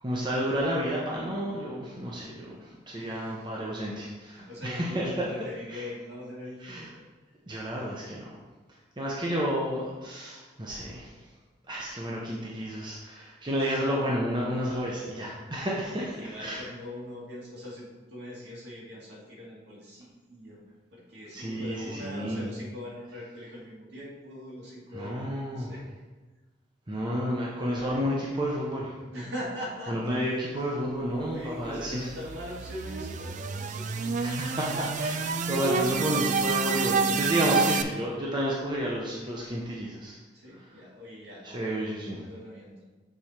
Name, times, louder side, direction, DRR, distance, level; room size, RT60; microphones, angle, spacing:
voice 1, 0.0-5.3 5.7-5.8 6.6-6.9 7.5-8.4 9.0-11.1 11.7-16.0 16.4-16.6 21.3-22.5 24.9-25.7 26.9-28.9 29.9-32.1 34.1-40.2 41.4-42.2, equal, 25° right, -4 dB, 0.8 m, -31 dB
voice 2, 2.9-3.4 4.2-6.9 13.6-13.8 15.8-20.6 20.9-25.8 29.1-30.2 31.3-34.1 34.7-35.4 40.3-42.9, left 1 dB, 60° right, -5 dB, 2.3 m, -42 dB
sound 1, 31.4-37.8, right 5 dB, 40° right, 0.3 m, -29 dB
6.9 x 4.2 x 4.5 m, 1.3 s
head